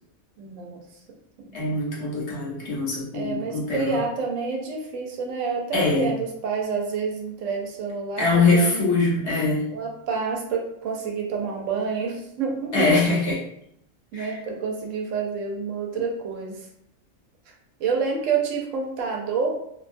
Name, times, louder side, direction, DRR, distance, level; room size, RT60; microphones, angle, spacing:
voice 1, 0.4-0.8 1.4-1.5 3.1-9.0 9.7-13.0 14.1-16.6 17.8-19.5, right 5 dB, 70° right, 0 dB, 0.9 m, -28 dB
voice 2, 1.5-4.0 5.7-6.1 8.2-9.6 12.7-13.3 14.1-14.4, left 3 dB, 60° left, -5 dB, 1.0 m, -23 dB
2.7 x 2.2 x 2.5 m, 0.75 s
omnidirectional pair, 1.4 m